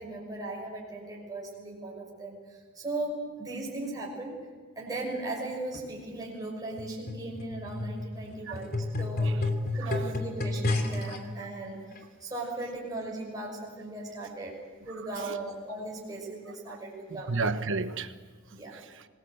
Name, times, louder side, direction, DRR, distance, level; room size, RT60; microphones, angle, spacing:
voice 1, 0.0-4.4 4.8-8.7 9.0-9.3 9.6-11.8 12.2-17.4 18.5-18.7, right 2 dB, 15° right, 6.1 m, -37 dB
sound 1, 6.8-11.2 12.0-12.1, left 2 dB, 45° left, 3.0 m, -31 dB
voice 2, 17.1-18.1 18.7-19.1, right 3 dB, 60° right, 1.2 m, -33 dB
25.5 x 19.5 x 8.0 m
head